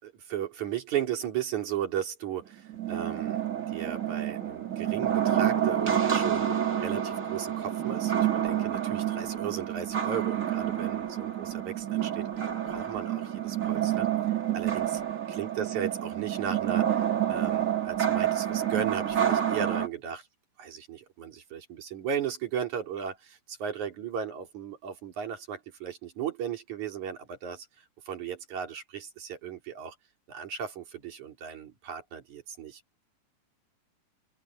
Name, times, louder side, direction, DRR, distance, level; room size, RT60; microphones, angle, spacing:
voice 1, 0.0-3.4 3.7-14.1 14.5-15.0 15.3-20.2 20.6-30.0 30.3-33.0, right 8 dB, 45° right, 4.2 m, -36 dB
sound 1, 2.7-19.9, right 10 dB, 30° right, 1.5 m, -28 dB
open air
omnidirectional pair, 5.0 m